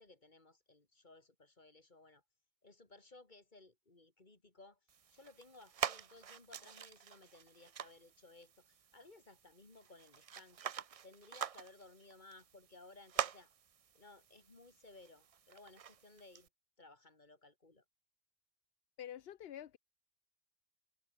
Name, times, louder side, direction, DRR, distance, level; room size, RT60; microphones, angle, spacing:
voice 1, 0.0-2.2 2.6-4.8 5.1-10.7 11.0-13.5 13.9-16.5 16.8-17.8, left 2 dB, 45° left, 2.9 m, -60 dB
sound 1, 4.9-16.5, right 8 dB, 45° right, 0.5 m, -46 dB
voice 2, 19.0-19.8, left 10 dB, 65° left, 0.9 m, -47 dB
omnidirectional pair, 1.1 m